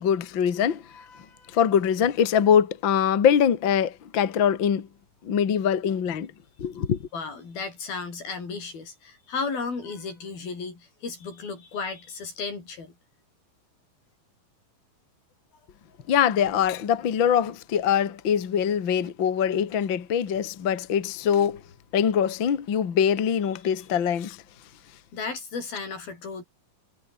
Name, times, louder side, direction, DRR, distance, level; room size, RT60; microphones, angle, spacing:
voice 1, 0.0-0.8 1.5-4.9 5.2-6.3 6.6-7.1 16.1-21.6 21.9-24.4, left 8 dB, 40° left, 2.1 m, -23 dB
voice 2, 0.9-1.6 7.1-12.9 25.1-26.4, left 4 dB, 90° left, 8.5 m, -34 dB
omnidirectional pair, 4.1 m